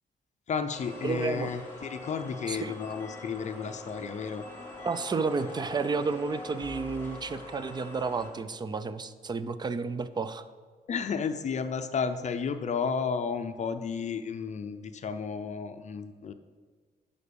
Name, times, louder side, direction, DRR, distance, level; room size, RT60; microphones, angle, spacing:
voice 1, 0.5-4.5 10.9-16.3, left 6 dB, 45° left, 9 dB, 0.5 m, -32 dB
sound 1, 0.7-8.3, left 2 dB, 15° left, 2.1 m, -43 dB
voice 2, 1.0-1.5 2.5-2.7 4.8-10.4, right 4 dB, 25° right, 13 dB, 0.5 m, -31 dB
11.0 x 5.2 x 6.9 m, 1.5 s
cardioid pair, 125°, 17 cm